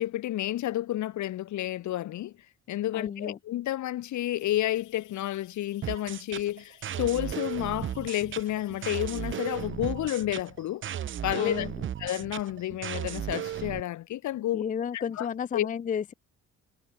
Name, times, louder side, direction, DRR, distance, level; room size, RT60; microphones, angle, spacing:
voice 1, 0.0-2.3 2.7-10.8 11.2-11.7 12.0-14.6 14.9-15.3 15.5-15.7, left 14 dB, 70° left, 0.9 m, -30 dB
voice 2, 2.9-3.4 11.4-11.9 14.5-16.1, left 7 dB, 25° left, 0.4 m, -32 dB
sound 1, 4.4-9.7, left 16 dB, 90° left, 3.9 m, -57 dB
sound 2, 5.8-13.8, right 10 dB, 40° right, 0.5 m, -35 dB
cardioid pair, 90°, 30 cm